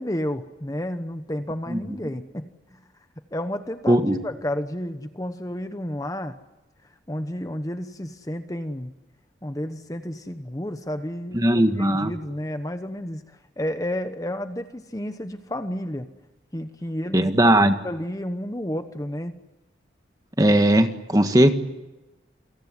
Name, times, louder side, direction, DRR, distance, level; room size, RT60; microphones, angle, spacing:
voice 1, 0.0-2.8 3.3-6.4 7.1-8.9 9.4-11.4 11.8-16.1 16.5-17.3 17.6-19.3, left 1 dB, 20° left, 9 dB, 1.0 m, -31 dB
voice 2, 3.9-4.2 11.3-12.1 17.1-17.8 20.4-21.5, right 1 dB, 20° right, 7 dB, 1.6 m, -18 dB
28.5 x 18.0 x 9.9 m, 1.0 s
head